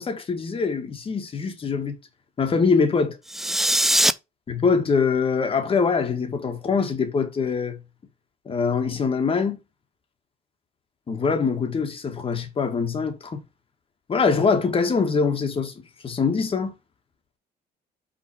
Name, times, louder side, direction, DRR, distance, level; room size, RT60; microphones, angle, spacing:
voice 1, 0.0-2.0 2.4-3.2 4.5-7.8 8.5-9.6 11.1-13.4 14.1-15.7 16.0-16.8, left 5 dB, 30° left, 1.8 m, -23 dB
sound 1, 3.3-4.1, right 1 dB, ahead, 0.4 m, -20 dB
5.9 x 3.9 x 4.7 m
cardioid pair, 110°, 17 cm